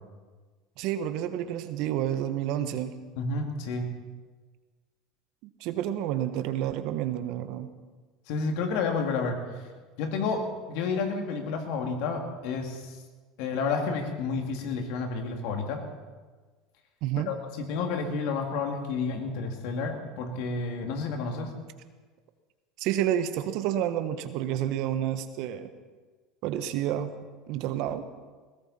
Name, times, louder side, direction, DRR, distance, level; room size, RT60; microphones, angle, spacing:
voice 1, 0.8-2.9 5.6-7.7 17.0-17.3 22.8-25.7 26.4-27.1 27.5-28.0, right 11 dB, 65° right, 10 dB, 1.1 m, -29 dB
voice 2, 3.2-3.9 8.3-9.4 10.0-12.9 13.4-15.8 17.3-21.5, left 4 dB, 70° left, 4 dB, 2.6 m, -30 dB
20.0 x 17.0 x 4.3 m, 1.4 s
hypercardioid pair, 90°, 0 cm